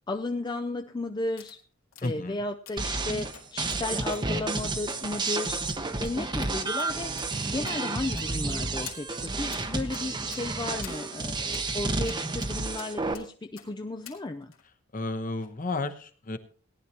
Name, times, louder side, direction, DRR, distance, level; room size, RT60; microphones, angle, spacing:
voice 1, 0.1-1.6 2.0-14.5, left 2 dB, 20° left, 5 dB, 0.4 m, -34 dB
sound 1, 1.4-1.6 1.9-2.1 2.7-2.9 3.3-3.8 4.1-4.3 4.9-5.0 5.3-5.4 5.7-5.8 6.1-6.2 6.4-6.5 6.8-6.9 7.2-7.3 7.7-7.8 8.2-8.5 8.9-9.0 9.5-9.6 9.9-10.0 10.3-10.4 10.8-11.0 11.5-11.7 12.1-12.5 12.8-13.3 13.6-13.7 14.1-14.2 14.5-14.6, left 8 dB, 85° left, 2.4 m, -46 dB
voice 2, 2.0-2.4 14.9-16.4, left 2 dB, 40° left, 10 dB, 1.0 m, -32 dB
sound 2, 2.8-13.1, right 3 dB, 20° right, 0.8 m, -31 dB
18.0 x 11.0 x 2.9 m, 0.42 s
head